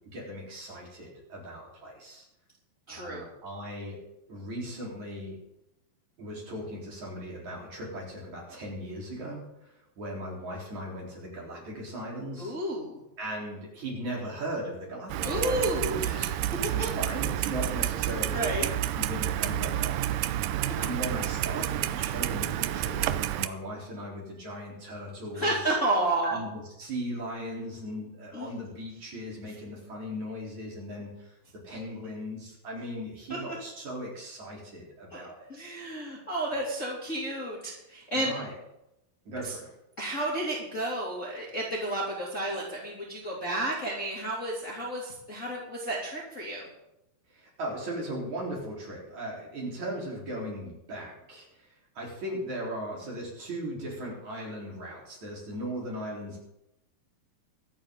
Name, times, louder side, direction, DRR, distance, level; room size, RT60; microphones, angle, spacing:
voice 1, 0.1-2.2 2.9-4.0 4.3-5.4 6.2-12.5 13.2-15.6 15.9-16.3 16.7-18.5 18.9-20.3 20.8-25.8 26.2-31.3 31.6-35.5 38.1-38.5 39.3-39.7 47.3-56.4, equal, 45° right, -4 dB, 5.4 m, -38 dB
voice 2, 2.9-3.3 12.4-13.0 15.2-16.3 16.8-16.9 18.3-18.7 20.6-20.7 25.3-26.4 28.3-28.5 33.3-33.4 35.1-38.4 39.4-39.5 40.0-46.6, right 1 dB, 20° left, -5 dB, 2.7 m, -31 dB
Clock, 15.1-23.5, right 13 dB, 80° right, 2.0 m, -30 dB
24.0 x 9.2 x 3.9 m, 0.88 s
omnidirectional pair, 4.6 m